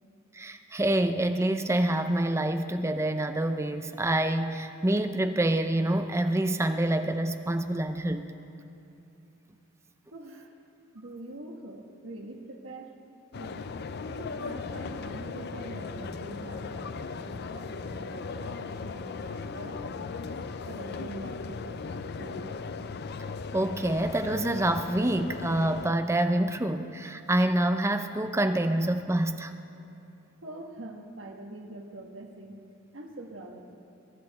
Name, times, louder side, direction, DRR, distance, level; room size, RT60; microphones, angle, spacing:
voice 1, 0.3-8.3 23.5-29.5, right 1 dB, 15° right, 8 dB, 0.6 m, -27 dB
voice 2, 10.1-10.5 10.9-13.0 13.3-20.2 20.7-22.6 30.4-32.6 32.9-33.7, right 1 dB, 75° right, 2 dB, 1.5 m, -44 dB
sound 1, 13.3-25.9, left 4 dB, 55° left, 0.5 m, -37 dB
22.5 x 10.5 x 4.2 m, 2.8 s
head